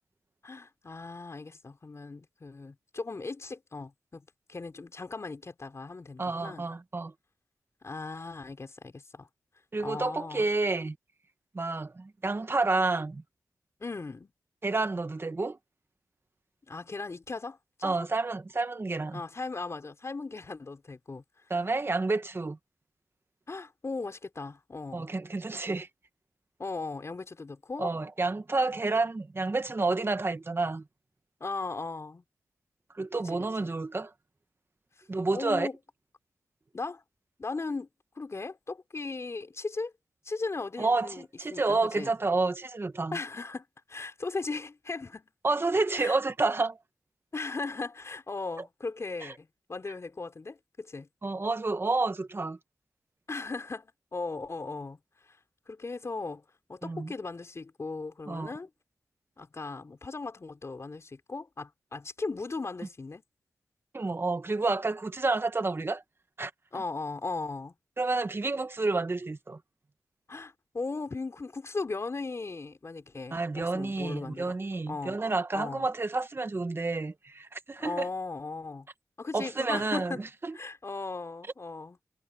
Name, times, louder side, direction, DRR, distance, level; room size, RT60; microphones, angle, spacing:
voice 1, 0.4-4.2 4.5-6.7 7.8-9.3 9.8-10.5 13.8-14.3 16.7-18.0 19.1-21.2 23.5-25.1 26.6-27.9 31.4-32.2 35.3-35.8 36.7-37.0 37.4-37.9 38.1-39.9 40.2-42.1 43.1-45.3 46.0-46.2 47.3-51.1 53.3-55.0 55.3-55.4 55.7-56.4 56.7-58.7 59.4-63.2 66.7-67.7 70.3-74.6 74.9-75.2 75.5-75.9 77.8-78.9 79.2-80.2 80.5-82.0, left 3 dB, 50° left, 4.4 m, -37 dB
voice 2, 6.2-7.1 9.7-11.0 11.5-13.2 14.6-15.6 17.8-19.2 21.5-22.6 24.9-25.9 27.8-30.8 33.0-34.1 35.1-35.7 40.8-43.2 45.4-46.8 49.2-49.3 51.2-52.6 56.8-57.1 58.3-58.5 63.9-66.0 66.4-66.5 68.0-69.6 73.3-78.1 79.3-80.6, right 3 dB, 40° right, 1.8 m, -29 dB
cardioid pair, 45°, 6 cm